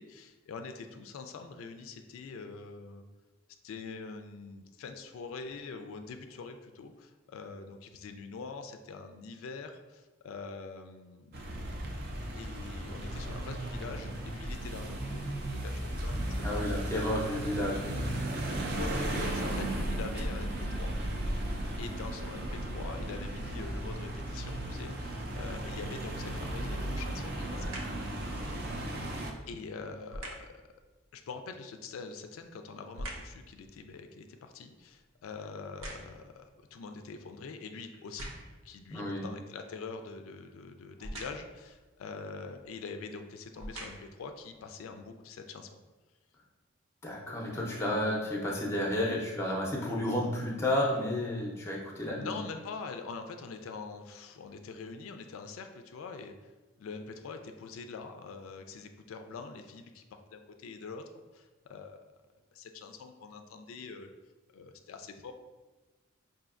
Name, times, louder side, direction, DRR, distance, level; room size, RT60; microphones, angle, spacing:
voice 1, 0.0-3.0 3.6-11.8 12.3-17.0 18.6-21.0 21.8-27.7 29.5-30.6 31.1-38.3 38.6-45.8 52.1-56.3 56.8-60.0 60.3-61.0 61.3-62.0 62.5-64.1 64.5-65.3, left 4 dB, 85° left, 6 dB, 0.3 m, -44 dB
sound 1, 11.3-29.3, right 1 dB, 50° right, 0.4 m, -35 dB
voice 2, 16.4-17.9 27.6-28.4 38.9-39.2 47.0-52.3, left 1 dB, 15° left, -2 dB, 0.5 m, -32 dB
sound 2, 27.5-28.1 30.1-30.6 32.0-33.4 33.9-36.4 37.0-37.1 37.9-38.7 41.0-41.6 42.6-42.7 43.4-44.2 44.9-45.0, right 1 dB, 90° right, 0.6 m, -44 dB
5.0 x 2.6 x 2.5 m, 1.2 s
head